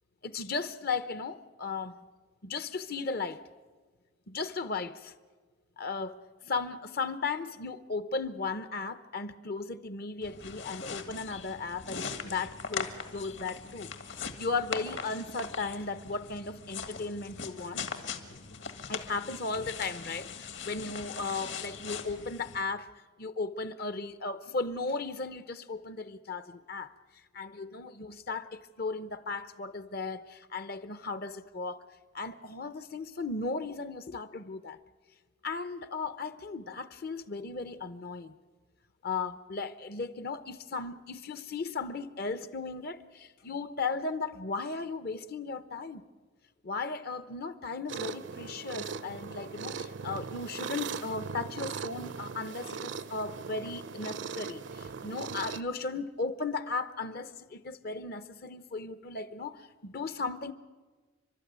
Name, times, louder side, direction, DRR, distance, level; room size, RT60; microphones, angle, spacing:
voice 1, 0.2-1.9 2.4-3.4 4.3-5.1 5.8-17.9 18.9-22.9 23.2-26.9 27.3-31.8 32.1-34.8 35.4-38.3 39.0-46.0 46.6-60.5, left 4 dB, 50° left, 0.8 m, -36 dB
sound 1, 10.2-22.6, left 5 dB, 65° left, 1.8 m, -40 dB
sound 2, 47.9-55.6, right 6 dB, 60° right, 0.6 m, -39 dB
29.5 x 12.5 x 9.4 m
head